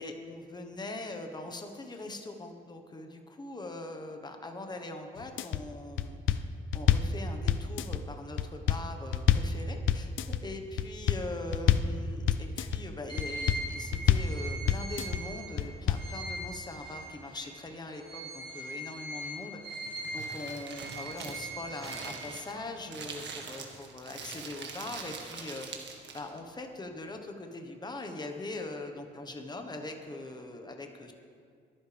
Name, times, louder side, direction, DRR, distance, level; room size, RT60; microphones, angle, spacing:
voice 1, 0.0-6.5 6.7-19.8 20.1-25.7 26.1-31.1, left 2 dB, 20° left, 4 dB, 1.3 m, -41 dB
sound 1, 5.2-5.6 6.0-7.1 7.5-8.0 8.4-9.5 9.9-10.4 10.8-11.2 11.5-11.9 12.3-12.8 13.2-13.6 13.9-14.3 14.7-15.2 15.6-16.1, left 10 dB, 80° left, 0.6 m, -26 dB
sound 2, 13.1-17.5 17.9-22.8, right 1 dB, 25° right, 3.7 m, -41 dB
Crumpling crinkling, 19.6-26.4, right 5 dB, 65° right, 1.8 m, -43 dB
22.0 x 9.9 x 3.5 m, 2.2 s
cardioid pair, 90°, 20 cm